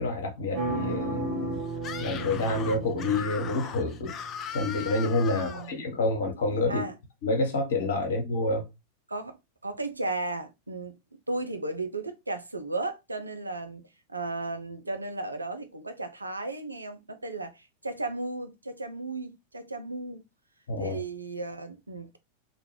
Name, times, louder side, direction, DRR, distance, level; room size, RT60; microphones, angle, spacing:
voice 1, 0.0-1.6 2.0-4.2 4.5-6.9 7.2-8.6 20.7-21.0, left 2 dB, 60° left, 0.8 m, -28 dB
sound 1, 0.5-4.3, right 4 dB, 30° right, 1.5 m, -34 dB
Screaming, 1.8-5.7, left 8 dB, 30° left, 0.4 m, -39 dB
voice 2, 5.3-5.9 6.7-6.9 9.1-9.4 9.6-11.0 11.3-13.8 14.1-20.2 20.8-22.2, right 2 dB, 80° right, 0.4 m, -35 dB
2.5 x 2.2 x 3.1 m
figure-of-eight pair, 90°, 0 cm